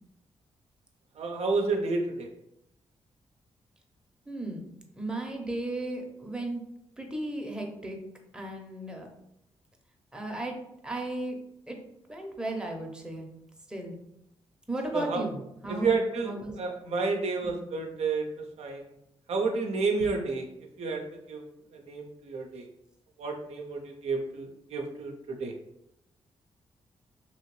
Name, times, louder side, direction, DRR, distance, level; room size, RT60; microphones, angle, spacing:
voice 1, 1.2-2.3 14.9-15.2 15.7-18.3 18.6-18.8 19.3-20.5 20.8-21.0 21.3-21.4 21.7-22.7 23.2-25.5, right 4 dB, 75° right, 2 dB, 0.5 m, -30 dB
voice 2, 4.3-4.7 5.0-6.6 7.0-8.0 8.3-9.1 10.1-10.6 10.8-11.4 11.7-11.8 12.1-13.3 13.7-14.0 14.7-15.9 16.2-16.6 19.9-20.2, right 1 dB, 5° right, 1 dB, 0.7 m, -35 dB
2.9 x 2.7 x 3.1 m, 0.81 s
cardioid pair, 65°, 11 cm